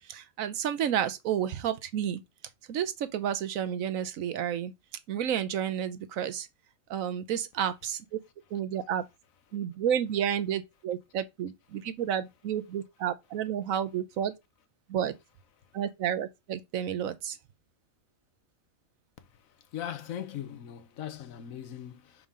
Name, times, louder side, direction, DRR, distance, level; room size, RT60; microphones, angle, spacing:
voice 1, 0.1-2.2 2.7-4.7 5.1-6.5 6.9-8.2 8.5-9.0 9.5-14.3 14.9-15.1 15.7-17.4, right 9 dB, 85° right, 1.2 m, -31 dB
voice 2, 19.7-22.3, left 10 dB, 85° left, 1.2 m, -39 dB
5.6 x 4.7 x 3.7 m
omnidirectional pair, 1.4 m